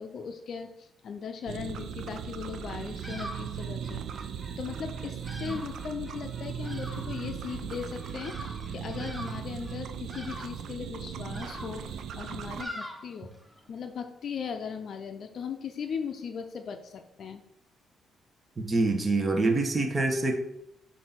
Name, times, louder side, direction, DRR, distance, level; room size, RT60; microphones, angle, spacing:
voice 1, 0.0-4.3 4.6-13.3 13.7-17.4, left 6 dB, 60° left, 6 dB, 0.5 m, -38 dB
sound 1, 1.5-12.6, right 7 dB, 70° right, 0.5 m, -38 dB
Bird vocalization bird call bird song, 2.7-13.7, equal, 5° right, 1.4 m, -45 dB
voice 2, 18.6-20.3, right 2 dB, 30° right, 2 dB, 1.1 m, -26 dB
7.5 x 2.7 x 5.8 m, 0.80 s
cardioid pair, 85°, 0 cm